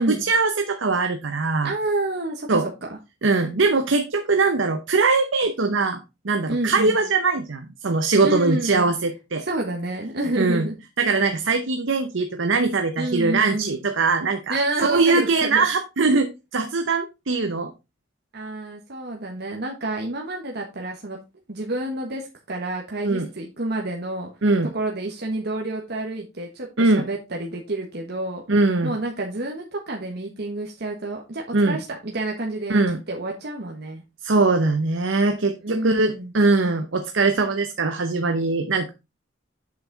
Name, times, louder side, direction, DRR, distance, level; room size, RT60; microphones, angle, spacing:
voice 1, 0.0-1.7 2.5-2.7 3.2-6.0 6.2-9.5 10.4-10.7 11.0-17.7 23.0-23.3 24.4-24.7 26.8-27.1 28.5-28.9 31.5-31.8 32.7-33.0 34.2-38.9, right 3 dB, 85° right, 6 dB, 0.9 m, -21 dB
voice 2, 1.6-3.0 6.5-7.0 8.2-8.9 9.4-10.8 13.0-13.8 14.5-15.6 18.3-21.2 21.5-24.3 24.7-28.4 28.8-32.8 33.1-34.0 35.6-36.3, right 2 dB, 60° right, 1 dB, 1.4 m, -29 dB
7.6 x 5.8 x 4.0 m, 0.25 s
head